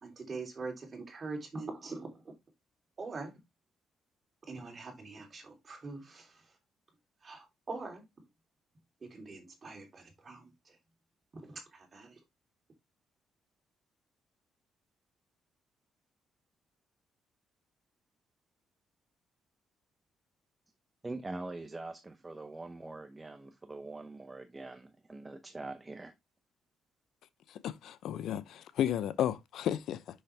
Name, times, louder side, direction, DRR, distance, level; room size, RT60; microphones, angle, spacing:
voice 1, 0.0-2.3 3.0-3.3 4.5-6.3 7.2-8.0 9.0-10.5 11.3-12.2, right 3 dB, 35° right, 3.2 m, -43 dB
voice 2, 21.0-26.1, right 2 dB, 20° right, 0.8 m, -43 dB
voice 3, 27.5-30.2, left 10 dB, 75° left, 0.6 m, -33 dB
6.5 x 5.6 x 3.3 m
cardioid pair, 90°, 0 cm